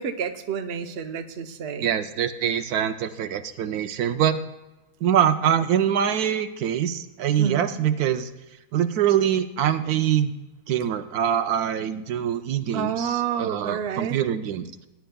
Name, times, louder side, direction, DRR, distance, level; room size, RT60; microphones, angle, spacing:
voice 1, 0.0-1.9 7.4-7.7 12.7-14.2, right 7 dB, 50° right, 6 dB, 0.9 m, -29 dB
voice 2, 1.8-4.4 5.0-8.3 8.7-10.3 10.7-14.7, right 9 dB, 80° right, 9 dB, 1.1 m, -24 dB
19.0 x 10.5 x 2.3 m, 1.0 s
omnidirectional pair, 1.6 m